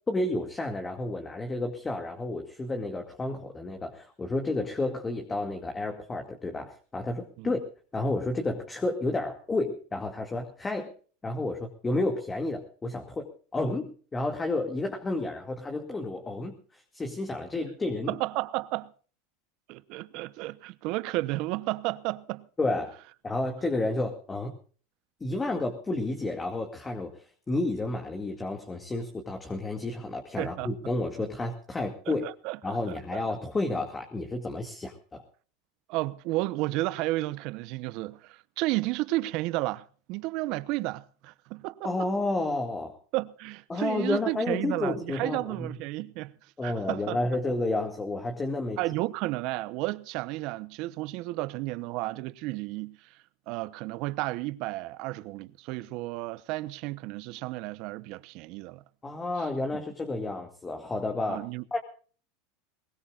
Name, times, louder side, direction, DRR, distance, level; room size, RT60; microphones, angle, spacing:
voice 1, 0.1-7.6 7.9-10.9 11.2-18.1 22.6-22.9 23.2-24.6 25.2-32.3 32.6-35.2 41.8-43.0 43.7-45.7 46.6-48.8 59.0-61.4 61.7-61.8, left 2 dB, 15° left, 2.3 m, -31 dB
voice 2, 18.1-18.9 19.7-22.5 30.4-30.7 32.1-33.2 35.9-42.1 43.1-46.3 46.6-47.2 48.8-53.2 53.5-58.8 59.7-59.8 61.3-61.6, right 19 dB, 60° right, 0.9 m, -32 dB
21.5 x 19.5 x 2.5 m
hypercardioid pair, 105°, 0 cm